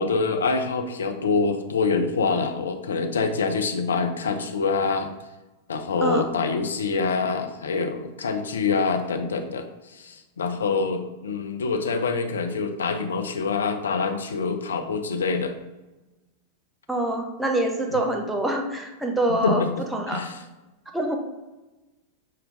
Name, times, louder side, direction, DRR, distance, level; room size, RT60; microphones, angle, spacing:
voice 1, 0.0-5.1 5.7-15.5 17.9-18.0 19.4-19.7 20.1-20.4, left 4 dB, 70° left, 6 dB, 0.5 m, -25 dB
voice 2, 16.9-19.6 19.9-20.2 20.9-21.2, right 1 dB, 5° right, 1 dB, 0.7 m, -25 dB
6.3 x 2.2 x 3.7 m, 1.1 s
figure-of-eight pair, 90°, 0 cm